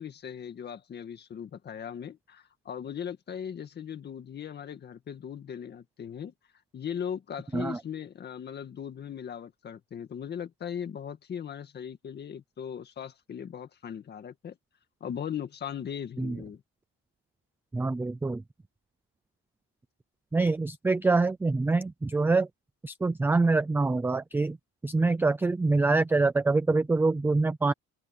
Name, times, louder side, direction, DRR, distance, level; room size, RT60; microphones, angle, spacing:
voice 1, 0.0-6.3 6.7-14.5 15.0-16.6, left 8 dB, 25° left, 1.9 m, -38 dB
voice 2, 17.7-18.4 20.3-22.5 22.8-24.6 24.8-27.7, right 3 dB, 5° right, 0.5 m, -25 dB
cardioid pair, 175°, 37 cm